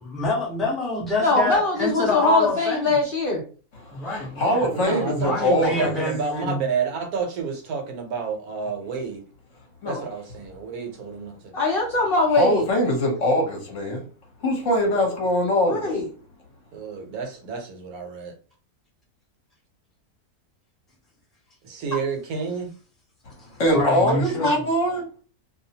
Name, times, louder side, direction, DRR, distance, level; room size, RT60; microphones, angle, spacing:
voice 1, 0.0-3.0 3.9-4.7 5.1-6.7 23.7-24.5, left 2 dB, ahead, 0.4 m, -26 dB
voice 2, 1.2-3.4 11.5-12.7 15.7-16.1 24.4-24.5, left 2 dB, 80° left, 0.5 m, -21 dB
voice 3, 3.8-5.9 9.8-10.0 12.3-14.0 14.4-15.9 23.6-25.1, left 1 dB, 55° left, 1.0 m, -22 dB
voice 4, 4.7-9.2 9.8-11.5 16.7-18.3 21.6-22.7, right 5 dB, 70° right, 1.1 m, -30 dB
2.7 x 2.0 x 2.7 m
omnidirectional pair, 1.7 m